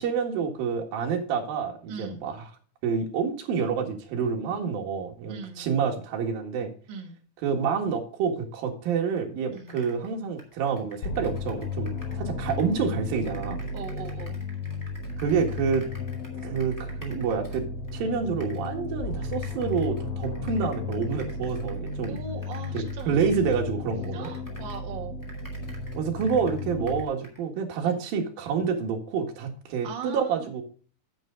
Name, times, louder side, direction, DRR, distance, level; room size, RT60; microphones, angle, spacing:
voice 1, 0.0-2.4 2.8-6.7 7.4-13.6 15.2-15.9 16.4-17.7 17.9-22.2 22.7-24.3 25.9-30.6, right 6 dB, 70° right, 2 dB, 3.4 m, -28 dB
voice 2, 1.9-2.2 5.3-5.7 6.9-7.2 9.5-9.8 13.7-14.4 22.1-23.5 24.1-25.2 27.8-28.0 29.8-30.5, right 5 dB, 50° right, 3 dB, 1.5 m, -40 dB
sound 1, 9.2-9.3 9.5-12.2 12.5-17.9 18.4-18.7 19.2-24.9 25.2-27.4, equal, 5° left, 1.6 m, -50 dB
sound 2, 11.0-27.0, left 3 dB, 75° left, 1.3 m, -34 dB
9.3 x 8.8 x 3.8 m, 0.43 s
omnidirectional pair, 4.5 m